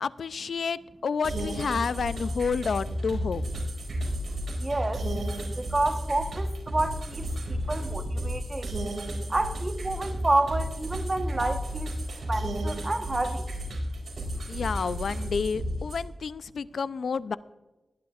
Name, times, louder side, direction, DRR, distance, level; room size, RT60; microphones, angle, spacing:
voice 1, 0.0-3.4 14.5-17.4, left 5 dB, 75° left, 15 dB, 0.4 m, -30 dB
sound 1, 1.2-16.0, equal, 70° right, 4.8 m, -32 dB
voice 2, 4.6-5.0 5.6-8.7 9.3-11.9 12.3-13.4, right 2 dB, 25° right, 6 dB, 1.1 m, -29 dB
21.0 x 11.0 x 2.4 m, 1.1 s
wide cardioid pair, 130°, 0 cm